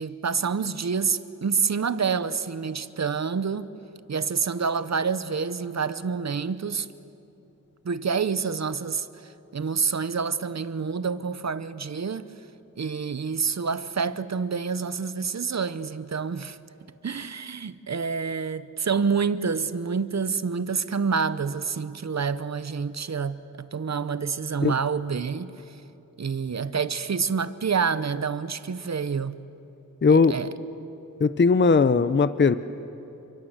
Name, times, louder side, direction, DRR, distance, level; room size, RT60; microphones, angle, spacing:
voice 1, 0.0-3.7 4.1-6.9 7.8-9.1 9.5-12.3 12.8-16.6 17.0-25.5 26.2-29.4 30.1-30.5, right 5 dB, 50° right, 0.9 m, -27 dB
voice 2, 30.0-30.4 31.2-32.6, left 4 dB, 35° left, 0.6 m, -18 dB
29.5 x 24.0 x 8.0 m
wide cardioid pair, 110°, 34 cm